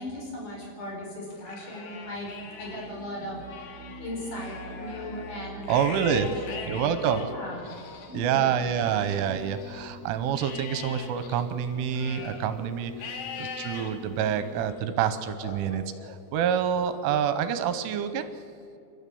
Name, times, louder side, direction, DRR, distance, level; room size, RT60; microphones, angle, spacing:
voice 1, 0.0-3.4 4.0-6.8 7.1-7.7 8.1-8.5, left 1 dB, 40° left, -3 dB, 5.9 m, -38 dB
Livestock farm animals working animals, 1.3-2.9 3.3-9.9 10.4-12.5 13.0-13.9 14.4-14.9 15.4-16.5, left 5 dB, 65° left, 3.6 m, -42 dB
sound 1, 1.9-9.1, right 1 dB, 40° right, 5.4 m, -46 dB
voice 2, 5.7-6.3 6.7-7.3 8.1-18.3, right 8 dB, 80° right, 10 dB, 3.2 m, -27 dB
sound 2, 8.4-14.7, left 2 dB, 5° right, 1.2 m, -47 dB
30.0 x 12.5 x 7.0 m, 2.6 s
omnidirectional pair, 5.7 m